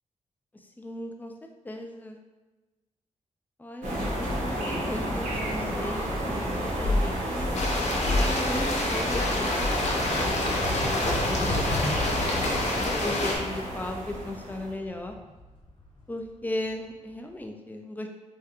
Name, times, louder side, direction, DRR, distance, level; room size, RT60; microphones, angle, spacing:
voice 1, 0.8-1.3 1.6-2.2 3.6-7.5 8.1-12.5 13.0-15.2 16.1-18.1, left 1 dB, 15° left, 3 dB, 0.3 m, -36 dB
sound 1, 3.8-14.7, equal, 85° right, 1.1 m, -30 dB
sound 2, 7.5-13.4, left 2 dB, 60° left, 0.6 m, -29 dB
sound 3, 9.3-16.7, left 1 dB, 40° left, 1.2 m, -36 dB
3.5 x 2.4 x 4.2 m, 1.2 s
wide cardioid pair, 175°, 13 cm